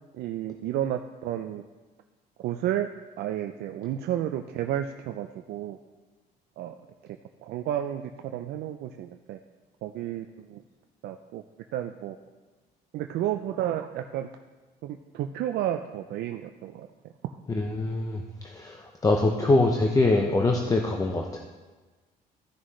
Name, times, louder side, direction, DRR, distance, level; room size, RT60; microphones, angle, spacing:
voice 1, 0.1-1.6 2.4-2.9 3.2-5.8 6.6-6.7 7.4-9.4 9.8-10.6 11.0-11.4 11.7-12.2 12.9-14.3 14.8-16.9 17.2-17.3, right 11 dB, 70° right, 6 dB, 0.4 m, -31 dB
voice 2, 17.5-18.2 18.6-18.8 19.0-21.4, left 2 dB, 20° left, 2 dB, 0.7 m, -23 dB
14.0 x 6.2 x 3.1 m, 1.3 s
cardioid pair, 110°, 17 cm